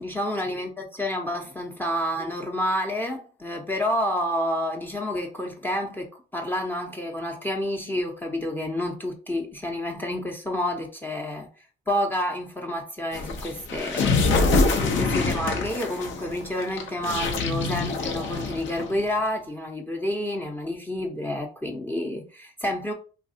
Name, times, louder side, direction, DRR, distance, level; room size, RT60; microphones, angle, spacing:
voice 1, 0.0-6.1 6.3-11.5 11.9-22.9, left 1 dB, 10° left, 0.6 m, -29 dB
sound 1, 13.1-19.0, left 3 dB, 75° left, 0.7 m, -25 dB
3.2 x 2.3 x 2.7 m
cardioid pair, 90°, 20 cm